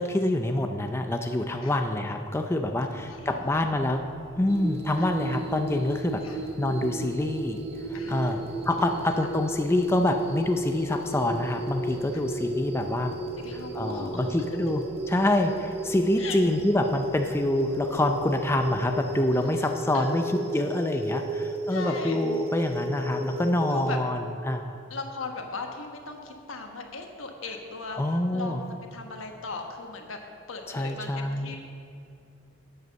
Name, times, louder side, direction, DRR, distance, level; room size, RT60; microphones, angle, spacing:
voice 1, 0.0-4.0 4.4-6.2 6.6-7.6 7.9-8.4 8.7-13.1 13.5-14.8 15.1-24.8 28.0-28.6 30.7-31.6, left 1 dB, 10° left, 5 dB, 0.4 m, -26 dB
voice 2, 2.9-3.5 5.0-5.1 6.2-6.4 7.9-8.4 8.8-9.1 12.1-12.2 13.4-14.3 16.2-16.4 19.5-19.6 19.9-20.2 21.7-22.2 23.7-24.0 24.9-30.2 30.5-31.6, left 3 dB, 80° left, 3 dB, 1.3 m, -38 dB
sound 1, 2.9-19.0, equal, 70° right, 1.7 m, -48 dB
sound 2, 4.5-24.0, right 1 dB, 30° right, 0.9 m, -34 dB
9.3 x 8.0 x 6.5 m, 2.5 s
head